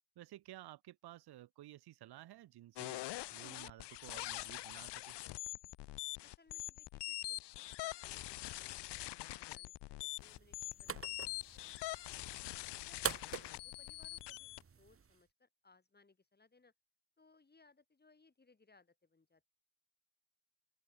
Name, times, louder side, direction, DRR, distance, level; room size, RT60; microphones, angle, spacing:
voice 1, 0.2-3.0 3.3-5.2, right 14 dB, 65° right, 0.9 m, -54 dB
sound 1, 2.8-14.6, left 17 dB, 80° left, 0.8 m, -44 dB
voice 2, 6.2-10.9 11.3-12.4 12.8-14.5 14.8-16.7 17.2-19.4, left 3 dB, 25° left, 5.9 m, -68 dB
sound 2, 10.2-15.2, right 6 dB, 30° right, 1.9 m, -46 dB
open air
cardioid pair, 105°, 41 cm